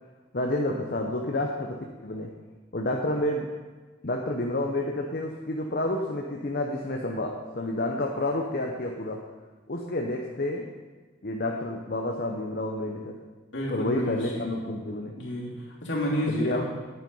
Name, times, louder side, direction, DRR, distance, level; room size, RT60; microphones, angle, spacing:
voice 1, 0.3-2.3 2.7-3.5 4.0-9.2 9.7-10.7 11.2-13.2 13.7-15.1 16.3-16.6, left 1 dB, 50° left, 1 dB, 0.8 m, -29 dB
voice 2, 13.5-14.5 15.2-16.7, equal, 65° left, -4 dB, 3.2 m, -30 dB
10.5 x 9.1 x 5.5 m, 1.4 s
head